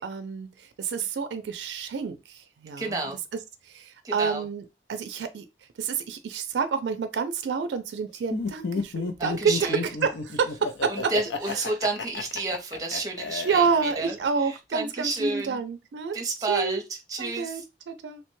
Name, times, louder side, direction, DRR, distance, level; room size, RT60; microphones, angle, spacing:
voice 1, 0.0-3.0 3.3-4.6 4.9-5.5 5.8-11.1 11.5-11.6 13.4-16.2 16.5-16.8 17.2-18.2, right 5 dB, 80° right, 0.4 m, -29 dB
voice 2, 2.8-3.2 4.0-4.4 9.2-9.8 10.9-14.1 14.4-15.6 16.1-16.8 17.1-17.6, right 3 dB, 20° right, 0.6 m, -30 dB
Laughter, 8.3-14.3, left 4 dB, 80° left, 0.5 m, -32 dB
2.9 x 2.1 x 3.0 m
head